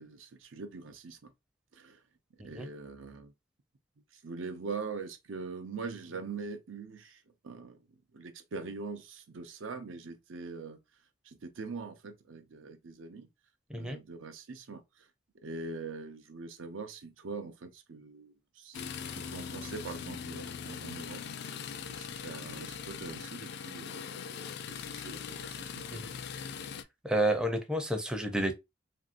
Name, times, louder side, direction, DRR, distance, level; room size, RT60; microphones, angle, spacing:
voice 1, 0.0-1.3 1.7-2.0 2.4-3.3 4.1-10.8 11.2-13.3 13.7-15.1 15.4-21.2 21.9-24.2 24.7-26.0, right 4 dB, 85° right, 0.6 m, -43 dB
sound 1, 18.7-26.8, left 7 dB, 60° left, 0.3 m, -41 dB
voice 2, 27.0-28.5, right 1 dB, 5° right, 0.4 m, -30 dB
3.1 x 2.6 x 2.4 m
head